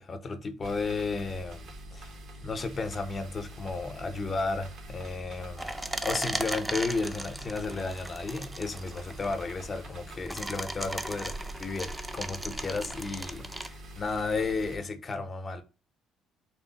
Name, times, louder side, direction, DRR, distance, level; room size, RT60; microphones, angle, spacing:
voice 1, 0.0-1.7 1.9-2.1 2.4-5.7 6.0-15.6, left 3 dB, 40° left, 0.5 m, -33 dB
sound 1, 0.6-14.8, right 1 dB, 60° right, 0.6 m, -45 dB
sound 2, 5.6-13.7, right 1 dB, 15° right, 0.4 m, -37 dB
3.0 x 2.0 x 2.8 m
hypercardioid pair, 60°, 0 cm